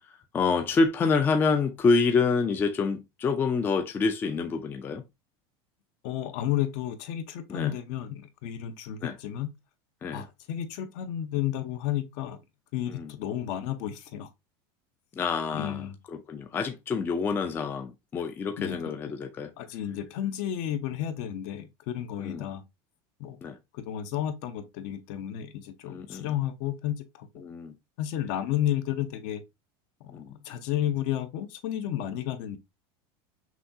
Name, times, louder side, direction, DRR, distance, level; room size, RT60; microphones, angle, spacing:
voice 1, 0.3-5.0 7.5-7.7 9.0-9.1 10.0-10.3 12.9-13.1 15.2-19.5 22.2-22.4 23.4-23.6 25.9-26.3 27.4-27.7 30.1-30.3, left 4 dB, 15° left, 0.4 m, -27 dB
voice 2, 6.0-9.5 10.1-12.4 12.7-14.3 15.5-16.0 18.6-18.8 19.6-22.6 23.2-23.4 23.7-27.3 28.0-29.4 30.0-32.6, left 11 dB, 55° left, 0.7 m, -32 dB
5.9 x 2.3 x 2.6 m
supercardioid pair, 160°, 13 cm